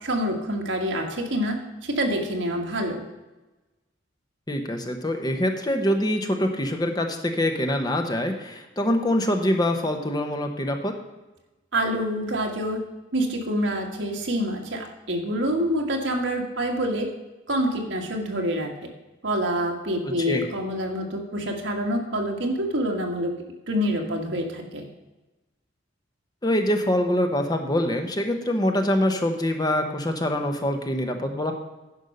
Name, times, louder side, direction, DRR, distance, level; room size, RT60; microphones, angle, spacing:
voice 1, 0.0-1.6 1.8-3.0 11.7-12.8 13.1-17.1 17.5-18.7 19.2-23.3 23.7-24.8, equal, 65° right, 2 dB, 1.6 m, -26 dB
voice 2, 4.5-10.9 20.3-20.4 26.4-31.5, left 1 dB, 20° left, 4 dB, 0.9 m, -24 dB
10.5 x 5.4 x 6.5 m, 1.1 s
head